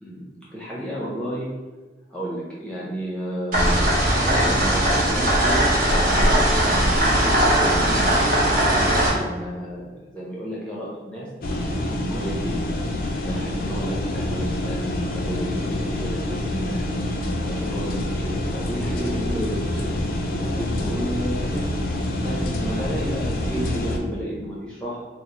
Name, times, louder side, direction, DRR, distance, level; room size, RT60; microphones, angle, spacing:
voice 1, 0.0-1.5 2.1-3.9 4.2-11.3 11.7-12.6 13.2-16.8 17.3-21.7 22.2-25.0, equal, 5° left, -7 dB, 0.6 m, -32 dB
sound 1, 3.5-9.1, right 1 dB, 45° right, 0.8 m, -19 dB
sound 2, 11.4-24.0, left 1 dB, 50° left, 0.4 m, -26 dB
3.0 x 2.0 x 3.8 m, 1.3 s
head